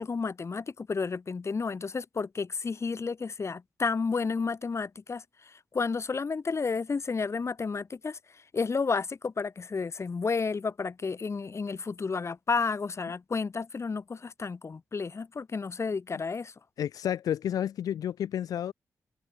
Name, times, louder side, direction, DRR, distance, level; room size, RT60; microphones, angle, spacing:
voice 1, 0.0-16.5, left 4 dB, 50° left, 2.3 m, -31 dB
voice 2, 16.8-18.7, left 10 dB, 90° left, 1.2 m, -30 dB
cardioid pair, 50°, 6 cm